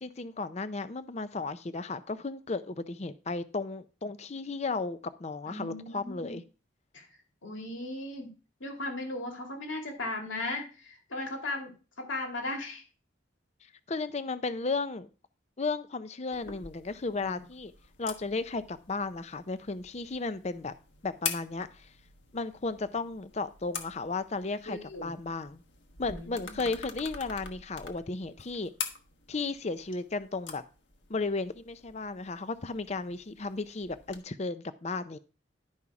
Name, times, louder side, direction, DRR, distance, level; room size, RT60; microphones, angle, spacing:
voice 1, 0.0-6.4 13.9-15.1 15.6-17.7 18.0-20.7 21.0-21.9 22.3-25.6 26.0-28.7 29.3-30.6 31.1-35.2, left 3 dB, 35° left, 13 dB, 0.5 m, -34 dB
voice 2, 5.5-6.4 6.9-7.1 7.4-8.3 8.6-12.8 17.2-17.5 24.7-25.1 26.0-26.7, left 2 dB, 85° left, 2 dB, 2.4 m, -37 dB
sound 1, 16.3-34.2, left 6 dB, 70° left, 1.2 m, -45 dB
11.0 x 5.5 x 4.8 m, 0.34 s
head